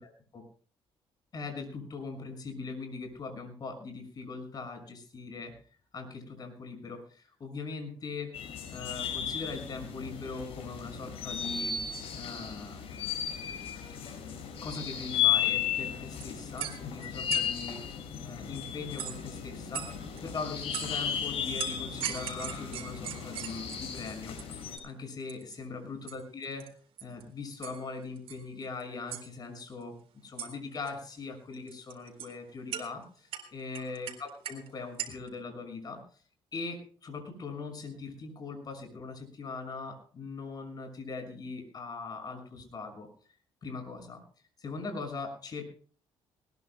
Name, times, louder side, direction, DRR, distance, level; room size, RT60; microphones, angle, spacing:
voice 1, 0.0-0.4 1.3-5.5 5.9-8.3 8.7-11.8 12.1-13.1 14.6-17.8 18.2-19.9 20.2-26.7 27.0-30.0 30.2-36.2 36.5-44.2 44.6-45.6, left 4 dB, 40° left, 5 dB, 6.1 m, -41 dB
sound 1, 8.3-24.8, left 9 dB, 75° left, 5.6 m, -35 dB
sound 2, 15.9-16.0 16.2-17.7 19.0-19.3 19.7-20.2 20.7-21.1 21.6-24.0 24.4-24.5 24.8-24.9 25.2-25.6 26.1-26.2 26.4-26.7 27.0-27.2 27.6-27.8 28.2-28.8 29.1-29.2 30.4-30.5 30.8-30.9 31.5-32.3 32.7-32.8 33.3-34.7 35.0-35.3, right 10 dB, 75° right, 3.7 m, -39 dB
20.0 x 20.0 x 2.2 m, 0.43 s
cardioid pair, 110°, 10 cm